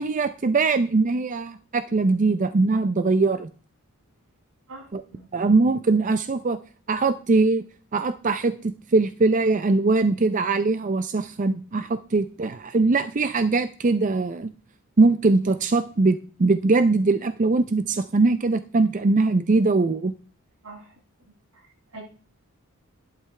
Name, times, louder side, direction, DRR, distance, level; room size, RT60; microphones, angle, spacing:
voice 1, 0.0-3.5 4.9-5.0 5.3-6.6 6.9-7.6 7.9-14.5 15.0-20.1, right 3 dB, 35° right, 12 dB, 0.5 m, -21 dB
voice 2, 4.7-5.3 20.6-20.9 21.5-21.7 21.9-22.0, right 2 dB, 80° right, -3 dB, 7.0 m, -43 dB
11.5 x 11.5 x 3.3 m, 0.40 s
head